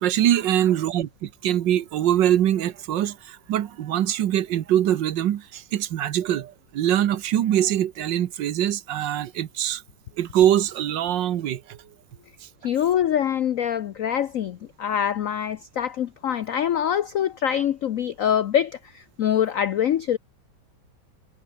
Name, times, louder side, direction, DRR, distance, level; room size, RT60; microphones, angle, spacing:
voice 1, 0.0-9.8 10.2-11.8, right 11 dB, 65° right, 1.5 m, -23 dB
voice 2, 12.6-20.2, left 9 dB, 85° left, 0.7 m, -24 dB
omnidirectional pair, 2.3 m